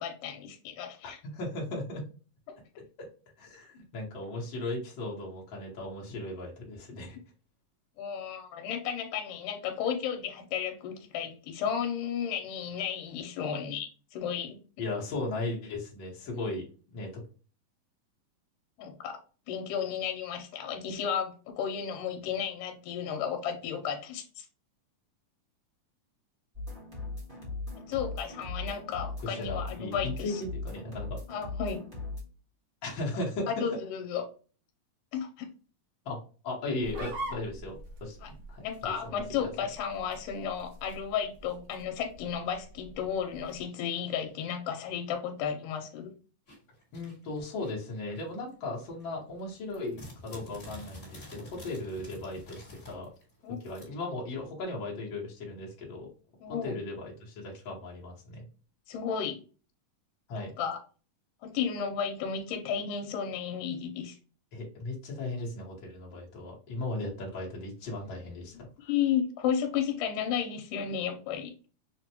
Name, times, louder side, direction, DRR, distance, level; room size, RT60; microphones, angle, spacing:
voice 1, 0.0-1.2 8.0-14.6 18.8-19.2 19.5-24.5 27.8-30.4 31.3-31.8 33.5-34.2 35.1-35.5 38.2-38.3 38.6-46.1 53.4-53.6 56.4-56.8 58.9-59.4 60.4-60.8 61.4-64.2 68.8-71.5, left 8 dB, 85° left, 4 dB, 2.1 m, -33 dB
voice 2, 1.3-2.0 3.4-7.2 14.8-16.6 16.9-17.1 29.2-31.2 32.8-33.7 36.0-36.2 36.4-38.2 38.5-39.5 46.9-53.1 53.6-56.1 56.6-58.4 60.3-60.5 64.5-68.9, left 2 dB, 60° left, -3 dB, 1.2 m, -37 dB
sound 1, 26.5-32.2, left 3 dB, 45° right, 0.6 m, -39 dB
sound 2, 36.8-43.7, right 1 dB, 75° right, 1.2 m, -45 dB
sound 3, 46.5-48.5 48.9-53.9, left 1 dB, 30° left, 1.4 m, -49 dB
6.2 x 2.2 x 2.8 m, 0.37 s
omnidirectional pair, 3.8 m